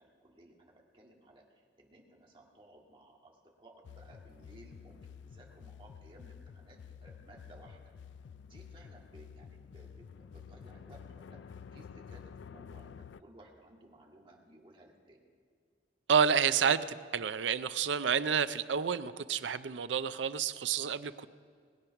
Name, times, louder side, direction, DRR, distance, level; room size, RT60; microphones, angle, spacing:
voice 1, 0.0-7.9 8.4-15.3, right 1 dB, 30° right, -1 dB, 2.0 m, -58 dB
sound 1, 3.8-13.2, left 6 dB, 80° left, 0.4 m, -50 dB
voice 2, 16.1-21.3, right 7 dB, 85° right, 13 dB, 0.5 m, -29 dB
20.5 x 8.6 x 5.9 m, 2.1 s
head